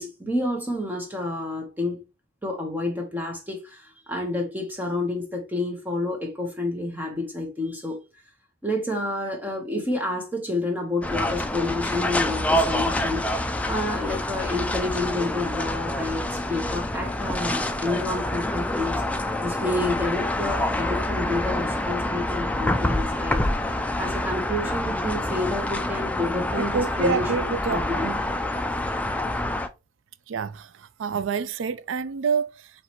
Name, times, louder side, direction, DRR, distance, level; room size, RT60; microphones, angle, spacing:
voice 1, 0.0-2.0 2.4-8.0 8.6-19.0 19.4-23.4 23.8-28.1, left 2 dB, 10° right, 1.1 m, -29 dB
sound 1, 11.0-29.7, left 1 dB, 5° left, 0.3 m, -27 dB
voice 2, 26.6-28.2 30.3-32.7, right 6 dB, 80° right, 0.4 m, -28 dB
4.9 x 3.2 x 3.1 m
head